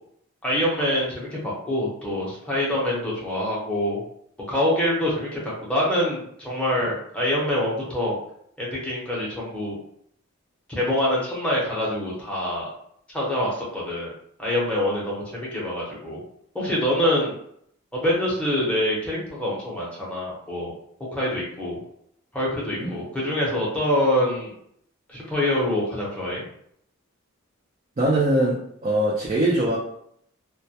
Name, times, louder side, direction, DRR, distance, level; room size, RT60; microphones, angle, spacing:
voice 1, 0.4-4.0 4.5-8.2 8.6-9.8 10.7-12.7 13.1-14.1 14.4-16.2 16.5-17.3 17.9-20.7 21.1-21.8 22.3-24.5 25.1-26.4, left 1 dB, 5° left, -6 dB, 0.7 m, -25 dB
voice 2, 28.0-29.8, right 1 dB, 30° right, -5 dB, 0.4 m, -22 dB
2.2 x 2.1 x 2.7 m, 0.70 s
head